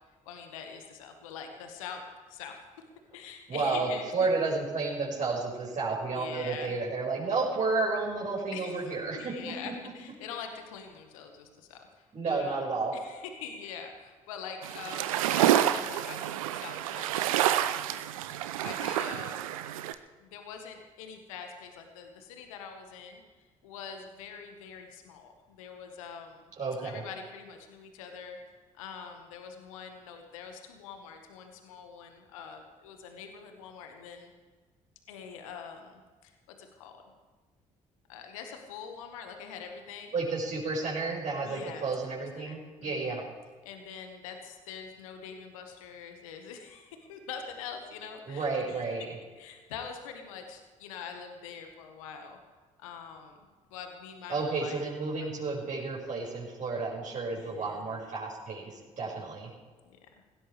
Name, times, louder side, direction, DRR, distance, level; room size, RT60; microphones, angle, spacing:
voice 1, 0.2-2.0 2.3-2.6 3.1-4.3 6.0-6.8 8.5-18.0 18.6-19.7 20.2-26.4 26.8-34.3 35.1-36.9 38.1-40.1 41.4-41.9 42.3-43.0 43.6-48.8 49.3-52.4 52.8-53.4 53.7-54.8 55.2-55.3 57.2-58.1 59.0-59.3 59.8-60.0, left 6 dB, 75° left, 4 dB, 1.6 m, -44 dB
voice 2, 3.5-9.7 12.1-12.9 26.6-27.0 40.1-43.2 48.3-49.1 54.3-59.5, right 3 dB, 45° right, -4 dB, 5.6 m, -31 dB
sound 1, 14.6-19.9, right 12 dB, 80° right, 0.7 m, -28 dB
20.5 x 16.0 x 3.4 m, 1.4 s
figure-of-eight pair, 45°, 17 cm